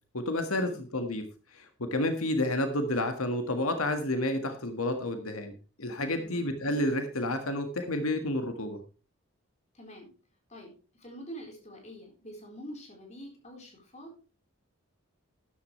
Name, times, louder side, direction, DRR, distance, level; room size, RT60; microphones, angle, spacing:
voice 1, 0.1-1.3 1.5-8.8, left 1 dB, 90° left, 7 dB, 1.7 m, -30 dB
voice 2, 6.1-6.5 9.7-10.1 10.5-14.2, equal, 30° left, 2 dB, 4.1 m, -46 dB
13.0 x 11.5 x 3.2 m, 0.34 s
head